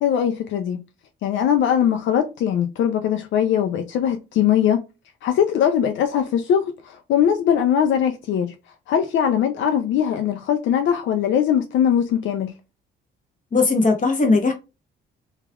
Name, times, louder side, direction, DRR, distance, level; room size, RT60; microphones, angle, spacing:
voice 1, 0.0-0.8 1.2-4.8 5.2-8.5 8.9-12.5, left 9 dB, 75° left, 0.4 m, -21 dB
voice 2, 13.5-14.5, left 3 dB, 40° left, 1.0 m, -18 dB
3.1 x 2.3 x 2.3 m
cardioid pair, 90°, 20 cm